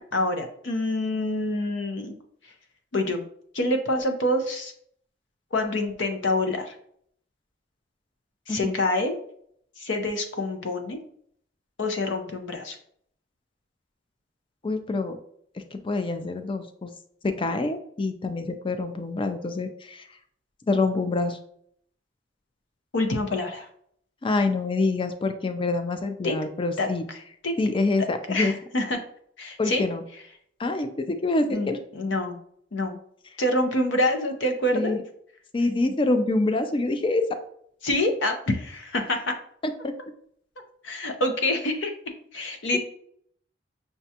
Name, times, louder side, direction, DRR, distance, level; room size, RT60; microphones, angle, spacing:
voice 1, 0.1-2.1 2.9-3.2 3.5-4.7 5.5-6.7 8.5-9.2 9.8-11.0 11.8-12.8 22.9-23.7 26.2-26.4 26.8-26.9 27.4-27.6 28.3-29.0 29.4-29.9 31.5-32.4 32.7-33.0 33.4-35.0 37.8-39.3 40.8-41.9 42.3-42.8, left 1 dB, 75° left, 5 dB, 0.7 m, -26 dB
voice 2, 14.6-15.2 15.7-16.9 17.2-20.1 20.7-21.4 24.2-27.0 27.6-28.5 29.6-30.0 30.6-31.8 34.7-35.0 35.5-37.4 39.6-39.9, left 2 dB, 30° left, 8 dB, 0.4 m, -26 dB
5.8 x 2.3 x 2.7 m, 0.65 s
head